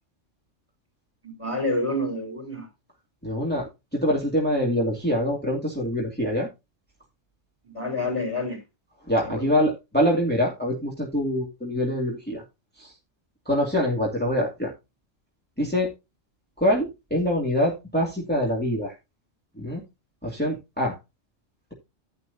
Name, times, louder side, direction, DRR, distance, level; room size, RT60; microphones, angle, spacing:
voice 1, 1.2-2.7 7.6-8.6 9.2-9.5, left 1 dB, 25° right, 4.6 m, -28 dB
voice 2, 3.2-6.5 9.1-12.4 12.8-12.9 13.5-14.7 15.6-15.9 16.6-18.9 19.6-19.8 20.2-20.9, equal, 10° left, 2.6 m, -25 dB
11.0 x 9.6 x 2.7 m
omnidirectional pair, 1.3 m